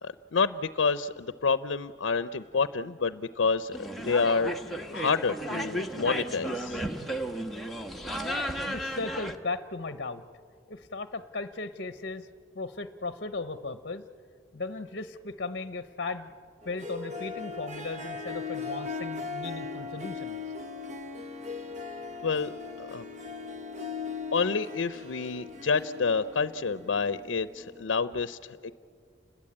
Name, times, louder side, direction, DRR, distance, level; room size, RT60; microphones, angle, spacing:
voice 1, 0.0-4.5 4.9-6.8 22.2-22.5 22.8-23.1 24.3-28.7, left 5 dB, 85° left, 13 dB, 0.6 m, -28 dB
sound 1, 3.7-9.4, equal, ahead, 1.3 m, -34 dB
voice 2, 8.7-10.2 10.7-12.3 12.5-14.0 14.5-16.3 16.6-20.4, left 3 dB, 55° left, 10 dB, 0.8 m, -36 dB
Harp, 16.6-27.8, left 4 dB, 40° right, 1.3 m, -39 dB
30.0 x 21.0 x 8.7 m, 2.3 s
head